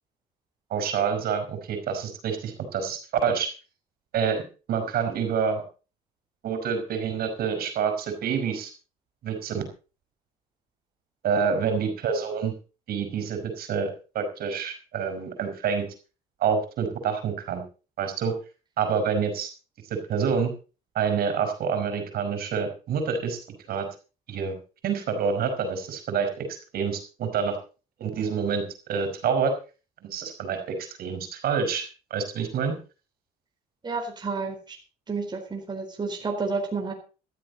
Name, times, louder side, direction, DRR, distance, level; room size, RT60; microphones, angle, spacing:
voice 1, 0.7-3.5 4.1-4.4 4.7-5.6 6.4-8.7 9.2-9.6 11.2-12.5 12.9-13.9 14.1-15.9 16.4-17.6 18.0-18.3 18.8-19.5 19.9-20.5 21.0-23.4 23.7-23.9 24.3-24.6 24.8-26.5 26.7-27.6 28.0-28.6 28.9-29.5 30.0-32.7, right 6 dB, 65° right, 7 dB, 5.3 m, -27 dB
voice 2, 33.8-34.8 35.1-36.9, right 4 dB, 25° right, 2 dB, 4.2 m, -30 dB
15.5 x 13.5 x 4.1 m, 0.34 s
cardioid pair, 110°, 17 cm